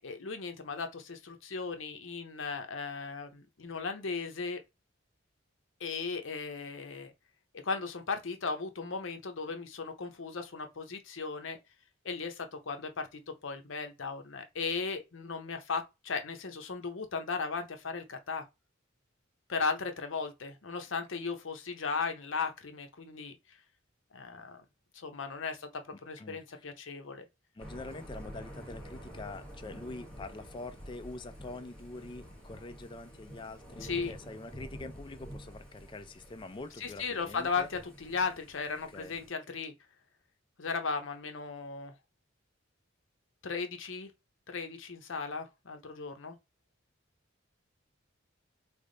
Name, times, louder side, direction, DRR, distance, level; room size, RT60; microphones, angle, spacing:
voice 1, 0.0-4.6 5.8-7.1 7.6-11.6 12.0-18.4 19.5-23.4 24.1-24.6 24.9-27.3 33.8-34.1 36.8-39.7 40.6-41.9 43.4-44.1 44.5-46.4, left 4 dB, 70° left, 0.7 m, -36 dB
voice 2, 25.9-26.4 27.5-37.7 38.9-39.2, left 2 dB, 25° left, 0.3 m, -45 dB
Thunder / Rain, 27.6-39.3, equal, 5° left, 1.1 m, -48 dB
3.4 x 2.1 x 3.8 m
head